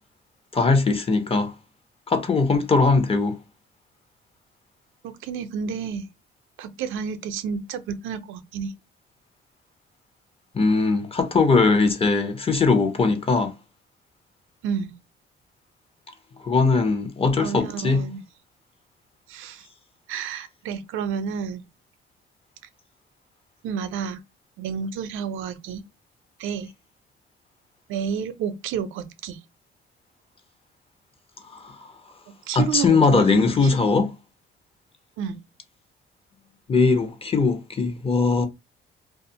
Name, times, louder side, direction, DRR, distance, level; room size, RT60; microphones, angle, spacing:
voice 1, 0.5-1.5 2.1-3.4 10.5-13.5 16.4-18.0 31.5-31.7 32.5-34.1 36.7-38.5, left 4 dB, 30° left, 0.7 m, -20 dB
voice 2, 5.0-6.1 6.6-8.7 14.6-15.0 17.4-18.2 19.3-19.7 20.1-21.7 23.6-24.2 24.6-25.8 26.4-26.7 27.9-29.4 32.3-33.4 33.7-33.8 35.2-35.4, right 7 dB, 85° right, 0.5 m, -30 dB
2.5 x 2.4 x 2.7 m
cardioid pair, 90°, 20 cm